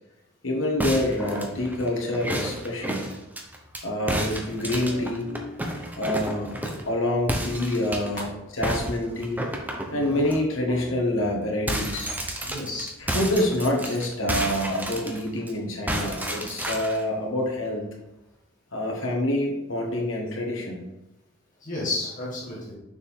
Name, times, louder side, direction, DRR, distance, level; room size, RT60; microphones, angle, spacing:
voice 1, 0.4-3.1 3.8-6.6 6.8-8.3 8.6-9.4 9.9-12.1 13.0-17.9 18.7-20.8, left 1 dB, 85° left, 0 dB, 1.6 m, -27 dB
sound 1, 0.8-3.8 4.1-6.9 7.3-8.2 8.6-10.4 10.8-10.9 11.2-15.5 15.9-17.0, right 1 dB, 10° right, 0.7 m, -31 dB
voice 2, 9.9-10.2 10.7-10.8 12.4-12.9 21.6-22.7, left 2 dB, 40° left, -6 dB, 1.9 m, -32 dB
6.7 x 4.4 x 3.6 m, 0.97 s
head